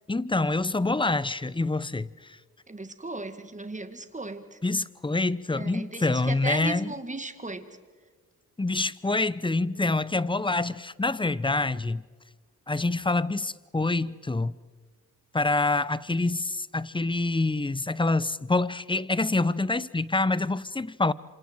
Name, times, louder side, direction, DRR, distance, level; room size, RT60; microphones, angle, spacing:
voice 1, 0.1-2.4 4.6-6.9 8.6-12.0 12.7-14.5 15.3-21.1, left 2 dB, 15° left, 0.8 m, -26 dB
voice 2, 2.7-4.6 5.5-7.7, right 3 dB, 20° right, 2.2 m, -36 dB
27.0 x 26.5 x 4.7 m
cardioid pair, 55°, 33 cm